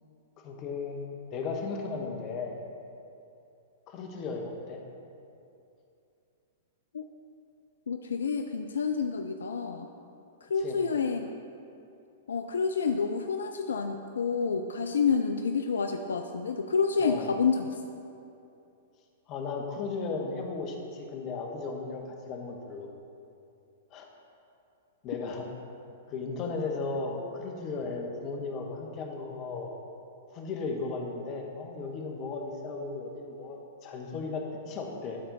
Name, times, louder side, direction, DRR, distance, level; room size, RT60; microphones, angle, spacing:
voice 1, 0.4-2.6 3.9-4.8 10.6-10.8 17.0-17.4 19.3-22.9 23.9-24.1 25.0-25.5 26.1-29.8 30.3-35.2, left 4 dB, 35° left, 1 dB, 1.2 m, -35 dB
voice 2, 7.9-9.9 10.5-11.3 12.3-17.7, left 5 dB, 75° left, 6 dB, 0.3 m, -28 dB
12.5 x 4.3 x 4.0 m, 2.6 s
figure-of-eight pair, 105°, 0 cm